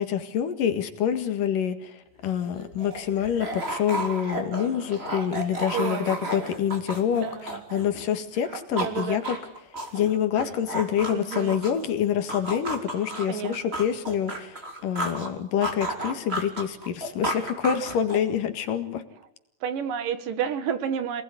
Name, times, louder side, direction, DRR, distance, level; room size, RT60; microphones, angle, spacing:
voice 1, 0.0-9.4 9.9-19.0, left 9 dB, 75° left, 8 dB, 3.4 m, -27 dB
sound 1, 2.2-2.3 2.5-8.1 8.3-11.9 12.3-15.3 15.6-18.4, right 1 dB, 20° right, 3.2 m, -33 dB
voice 2, 5.7-6.2 7.1-7.6 8.7-9.2 11.1-11.6 13.2-13.7 19.6-21.2, right 8 dB, 75° right, 11 dB, 3.1 m, -30 dB
27.0 x 19.5 x 9.8 m, 0.77 s
omnidirectional pair, 4.0 m